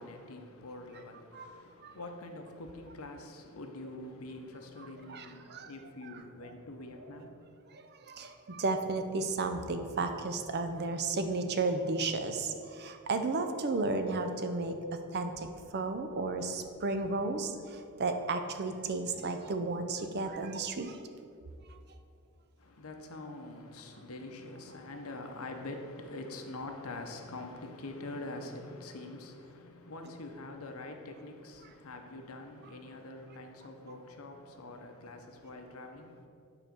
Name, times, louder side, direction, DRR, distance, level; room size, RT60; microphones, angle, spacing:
voice 1, 0.0-7.4 22.6-36.3, left 2 dB, 70° left, 0.9 m, -45 dB
voice 2, 4.8-5.7 6.0-6.5 7.7-14.8 15.1-15.5 15.7-21.0 21.9-22.0 24.9-25.0 31.6-31.7, right 3 dB, 50° right, 0.5 m, -33 dB
9.1 x 3.9 x 6.0 m
head